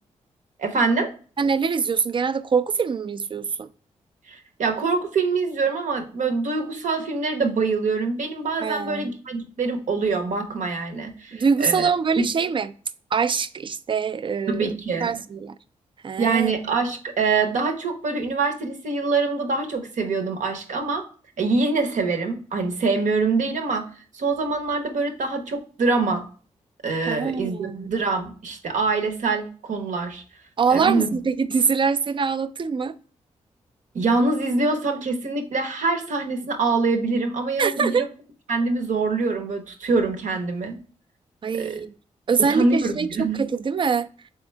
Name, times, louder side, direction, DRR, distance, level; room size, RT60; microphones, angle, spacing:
voice 1, 0.6-1.1 4.3-11.9 12.2-12.3 14.5-15.2 16.2-21.0 21.4-23.9 24.1-26.3 26.8-30.2 30.7-31.1 33.9-38.1 38.5-40.8 41.5-41.8 42.5-43.4, right 3 dB, 70° right, 0.9 m, -24 dB
voice 2, 1.4-3.7 8.6-9.1 11.3-12.7 13.1-14.7 15.0-15.5 16.0-16.5 27.0-27.9 30.6-32.9 37.6-38.1 41.4-41.9 42.3-44.1, right 5 dB, 40° right, 0.4 m, -24 dB
3.6 x 3.6 x 3.2 m
cardioid pair, 55°, 13 cm